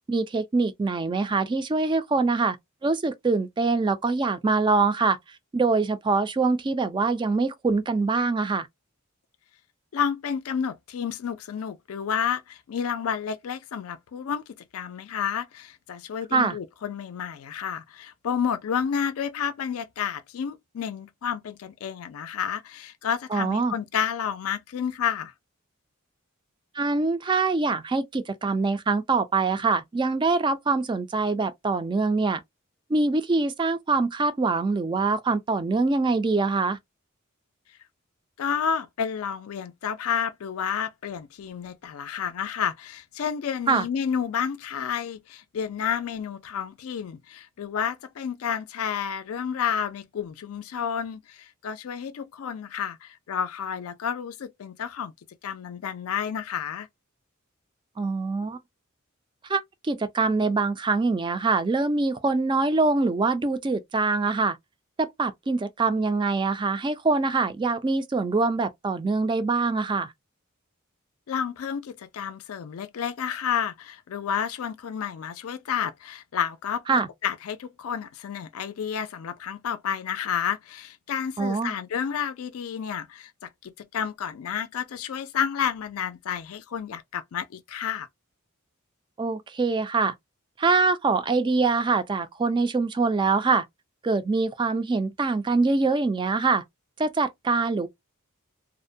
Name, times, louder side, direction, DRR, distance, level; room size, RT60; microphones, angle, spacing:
voice 1, 0.1-2.6 2.8-5.2 5.5-8.7 16.3-16.6 23.3-23.7 26.8-32.4 32.9-36.8 43.7-43.9 58.0-58.6 59.5-64.6 65.0-70.1 76.9-77.1 81.4-81.7 89.2-90.1 90.6-93.6 94.0-96.6 97.0-97.9, right 3 dB, 20° right, 0.3 m, -24 dB
voice 2, 9.9-14.4 14.7-25.3 38.4-55.1 55.4-56.9 71.3-88.1, left 8 dB, 80° left, 0.4 m, -30 dB
2.5 x 2.1 x 2.5 m
head